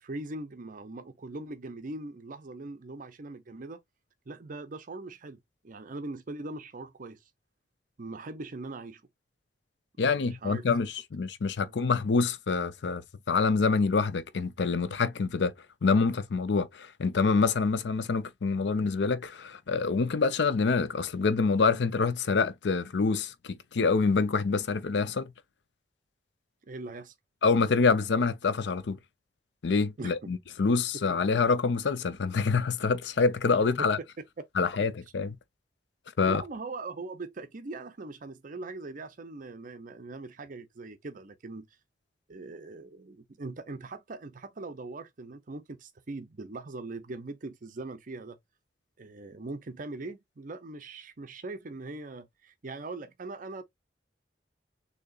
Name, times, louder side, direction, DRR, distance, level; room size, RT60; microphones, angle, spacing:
voice 1, 0.0-3.8 4.3-7.2 8.0-9.0 10.0-10.9 11.6-11.7 26.6-27.1 30.0-30.2 34.0-34.1 36.2-41.8 42.3-48.4 49.0-53.6, right 3 dB, 50° right, 0.6 m, -41 dB
voice 2, 10.0-13.0 13.3-15.5 15.8-25.3 27.4-29.0 29.6-34.0 34.6-35.4 36.2-36.4, left 4 dB, 70° left, 0.5 m, -26 dB
6.6 x 2.8 x 2.4 m
head